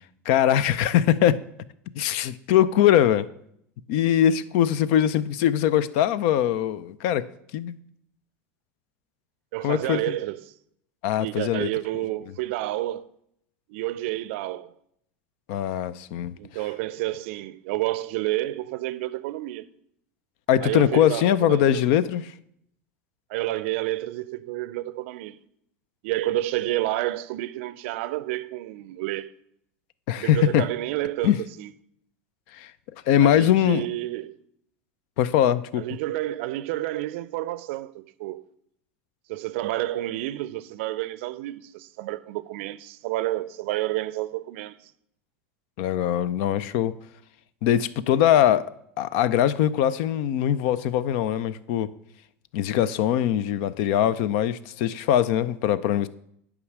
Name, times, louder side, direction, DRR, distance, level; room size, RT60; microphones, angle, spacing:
voice 1, 0.3-1.4 2.0-3.3 3.9-7.3 7.5-7.8 9.6-10.2 11.0-11.7 15.5-16.3 20.5-22.2 30.1-30.6 31.2-31.4 32.5-32.7 33.1-33.9 35.2-35.8 45.8-46.9 47.6-48.7 49.0-51.9 52.5-56.1, left 10 dB, 60° left, 0.5 m, -22 dB
voice 2, 9.5-10.5 11.2-13.1 13.7-14.7 16.4-19.7 20.6-21.8 23.3-25.4 26.0-29.3 30.2-31.7 33.2-34.4 35.8-38.4 39.3-44.9, right 16 dB, 65° right, 0.5 m, -30 dB
9.7 x 4.9 x 6.5 m
hypercardioid pair, 80°, 7 cm